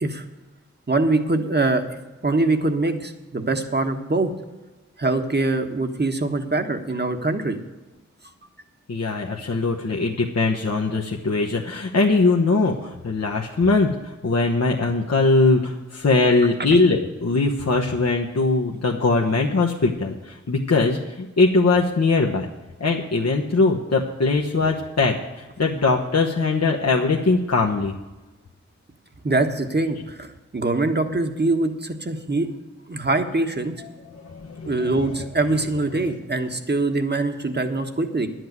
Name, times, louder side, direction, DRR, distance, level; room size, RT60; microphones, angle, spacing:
voice 1, 0.9-1.8 2.2-4.3 5.0-7.6 29.2-30.3 30.5-32.5 32.9-33.7 34.6-38.3, right 2 dB, 35° right, 7 dB, 1.4 m, -23 dB
voice 2, 8.9-22.5 22.8-27.9 33.8-35.2, left 3 dB, 60° left, -1 dB, 1.2 m, -21 dB
10.5 x 7.9 x 7.9 m, 1.1 s
wide cardioid pair, 50°, 29 cm